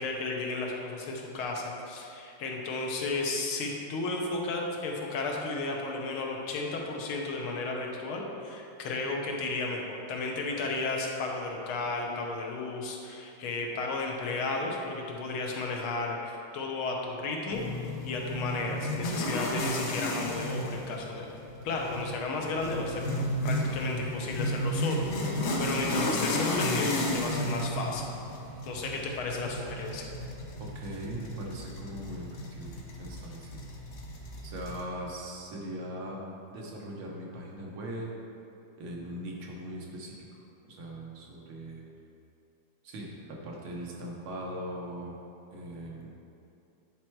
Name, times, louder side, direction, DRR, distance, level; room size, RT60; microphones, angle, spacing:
voice 1, 0.0-17.6 18.0-21.3 21.6-23.0 23.4-28.0 28.7-30.0, left 3 dB, 85° left, 0 dB, 1.7 m, -33 dB
sound 1, 17.5-34.8, left 1 dB, 65° left, 0.6 m, -33 dB
voice 2, 30.6-33.6 34.4-36.2 36.5-38.1 38.8-41.8 42.8-45.2 45.5-46.1, right 1 dB, 85° right, -2 dB, 1.9 m, -40 dB
9.3 x 4.3 x 4.6 m, 2.7 s
omnidirectional pair, 2.2 m